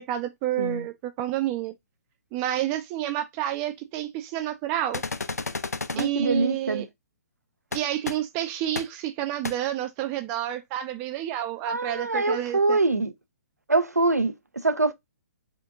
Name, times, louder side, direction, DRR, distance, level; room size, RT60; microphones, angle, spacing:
voice 1, 0.0-1.7 2.3-5.0 6.0-6.9 7.7-12.8, right 12 dB, 25° right, 0.3 m, -29 dB
sound 1, 4.9-6.1 7.7-8.1 8.8-8.9 9.4-9.5, left 3 dB, 80° left, 0.4 m, -31 dB
voice 2, 5.9-6.8 11.7-13.1 13.7-14.9, right 3 dB, 85° right, 0.5 m, -24 dB
3.7 x 2.5 x 3.7 m
figure-of-eight pair, 125°, 8 cm